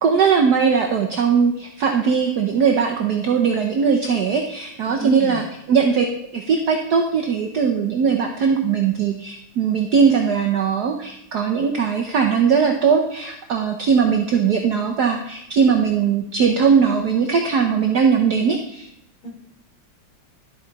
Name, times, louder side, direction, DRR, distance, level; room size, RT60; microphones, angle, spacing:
voice 1, 0.0-6.1 6.3-18.9, right 6 dB, 60° right, 2 dB, 1.2 m, -19 dB
voice 2, 4.9-5.4 19.2-19.3, equal, 45° left, -5 dB, 4.6 m, -31 dB
12.0 x 8.2 x 4.0 m, 0.78 s
omnidirectional pair, 2.3 m